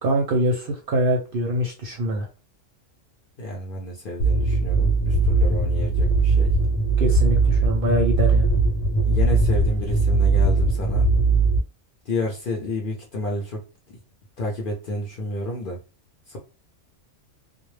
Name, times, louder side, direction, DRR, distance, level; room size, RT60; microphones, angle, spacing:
voice 1, 0.0-2.3 7.0-8.5, right 1 dB, 60° right, 1 dB, 0.6 m, -24 dB
voice 2, 3.4-6.5 9.1-11.1 12.1-14.0 14.4-15.8 16.3-16.4, left 1 dB, 55° left, -1 dB, 0.6 m, -30 dB
sound 1, 4.2-11.6, right 3 dB, 80° left, 0.9 m, -20 dB
2.2 x 2.0 x 3.1 m, 0.31 s
omnidirectional pair, 1.3 m